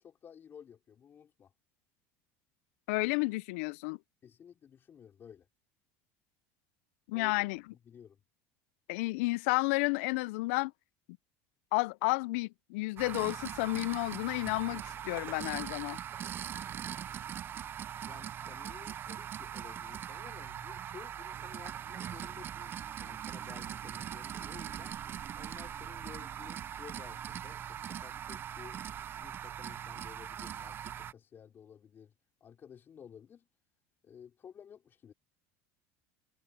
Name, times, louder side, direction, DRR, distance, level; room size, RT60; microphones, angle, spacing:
voice 1, 0.0-1.5 4.2-5.5 7.1-7.5 7.8-8.2 18.0-25.0 25.3-28.8 29.1-32.1 32.4-33.5 34.0-35.1, left 8 dB, 30° left, 4.4 m, -54 dB
voice 2, 2.9-4.0 7.1-7.6 8.9-10.7 11.7-16.0, left 25 dB, 80° left, 0.3 m, -31 dB
sound 1, 13.0-31.1, right 9 dB, 30° right, 0.4 m, -41 dB
supercardioid pair, 135°, 7 cm